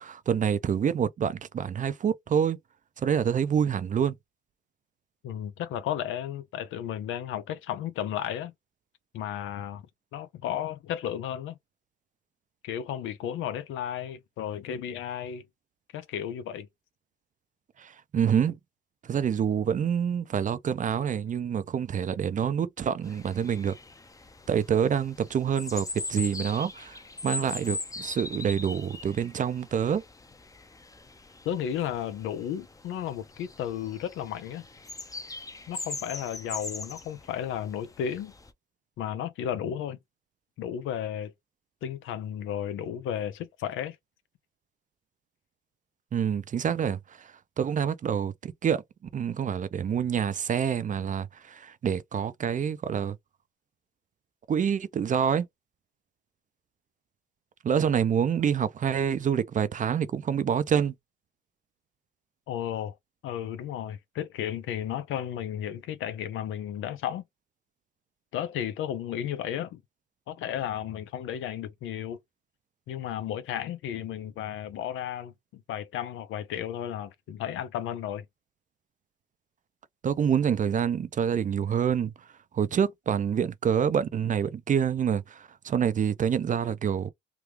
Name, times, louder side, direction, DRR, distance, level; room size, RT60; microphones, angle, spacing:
voice 1, 0.0-2.6 3.0-4.1 17.8-18.6 19.1-23.8 24.5-27.0 27.2-30.0 46.1-47.3 47.6-48.8 49.1-53.2 54.5-55.5 57.6-60.9 80.0-82.1 82.5-87.1, right 8 dB, 40° right, 0.5 m, -27 dB
voice 2, 5.2-8.5 9.1-9.8 10.1-11.6 12.6-15.4 15.9-16.7 31.4-34.6 35.7-38.3 39.0-40.0 40.6-41.3 41.8-44.0 62.5-62.9 63.2-67.2 68.3-69.8 70.3-72.2 72.9-78.3, left 10 dB, 85° left, 0.7 m, -33 dB
sound 1, 23.0-38.5, left 3 dB, 15° left, 0.6 m, -41 dB
3.5 x 2.3 x 3.0 m
cardioid pair, 90°, 20 cm